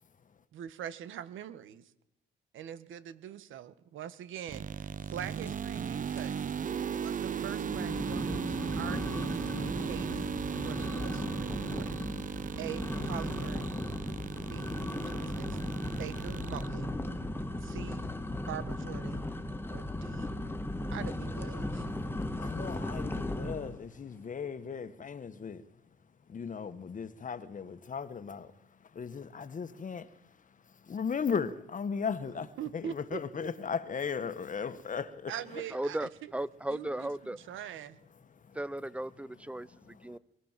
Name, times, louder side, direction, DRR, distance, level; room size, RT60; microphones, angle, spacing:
voice 1, 0.5-1.9 2.5-11.9 12.6-13.8 14.5-17.0 17.6-18.1 18.5-19.3 19.7-20.4 20.9-21.9 32.3-33.5 35.3-36.1 36.7-38.0, right 10 dB, 80° right, 1.6 m, -44 dB
sound 1, 4.5-16.7, right 7 dB, 40° right, 0.8 m, -37 dB
sound 2, 5.5-5.9 6.1-6.5 6.9-7.0 7.6-23.8, left 1 dB, 10° left, 2.1 m, -37 dB
voice 2, 22.1-25.6 26.3-35.6 38.3-38.6 39.6-40.2, left 6 dB, 40° left, 1.5 m, -37 dB
voice 3, 35.7-37.4 38.5-40.2, right 1 dB, 5° right, 0.8 m, -36 dB
23.0 x 17.0 x 7.6 m
cardioid pair, 90°, 20 cm